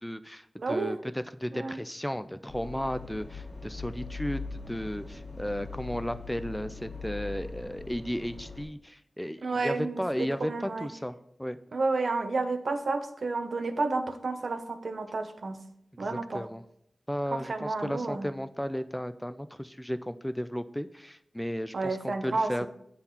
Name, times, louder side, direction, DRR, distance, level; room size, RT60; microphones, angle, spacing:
voice 1, 0.0-11.6 16.0-16.6 17.1-22.7, equal, 5° left, 11 dB, 0.3 m, -34 dB
voice 2, 0.6-1.0 1.5-1.8 9.4-10.9 11.7-15.6 16.0-16.4 17.5-18.3 21.7-22.7, right 3 dB, 70° right, 7 dB, 0.7 m, -31 dB
sound 1, 2.5-8.6, left 4 dB, 50° left, 1.6 m, -41 dB
8.0 x 3.9 x 4.2 m, 0.73 s
cardioid pair, 55°, 0 cm